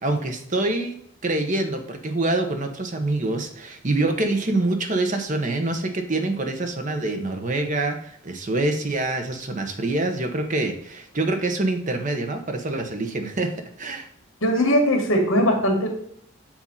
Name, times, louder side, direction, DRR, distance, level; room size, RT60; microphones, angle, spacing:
voice 1, 0.0-1.0 1.2-13.5 13.8-14.1, right 2 dB, 35° right, 5 dB, 0.8 m, -25 dB
voice 2, 14.4-15.9, equal, 70° left, 2 dB, 1.8 m, -20 dB
7.4 x 2.7 x 5.4 m, 0.67 s
head